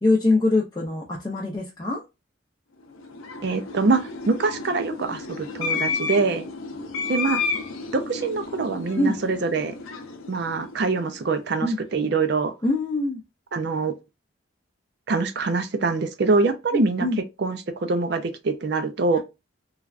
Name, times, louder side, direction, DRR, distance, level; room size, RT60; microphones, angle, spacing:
voice 1, 0.0-2.0 9.0-9.2 11.6-11.8 12.6-13.2 16.7-17.2, left 2 dB, 20° left, 0.5 m, -23 dB
sound 1, 2.9-11.4, left 4 dB, 85° left, 0.6 m, -32 dB
voice 2, 3.4-6.5 7.1-7.4 7.9-9.7 10.3-12.5 13.5-13.9 15.1-17.1 17.4-19.2, right 4 dB, 55° right, 0.4 m, -24 dB
3.2 x 2.3 x 2.4 m
head